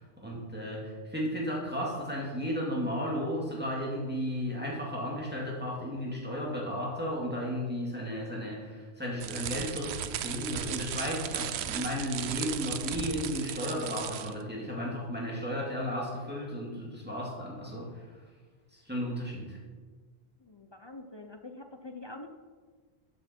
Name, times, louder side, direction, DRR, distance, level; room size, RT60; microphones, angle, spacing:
voice 1, 0.0-17.9 18.7-19.6, equal, 10° right, -4 dB, 2.2 m, -34 dB
sound 1, 9.2-14.4, right 10 dB, 75° right, 0.8 m, -36 dB
voice 2, 20.4-22.3, left 2 dB, 30° left, 5 dB, 0.5 m, -45 dB
12.5 x 6.6 x 4.4 m, 1.5 s
omnidirectional pair, 1.1 m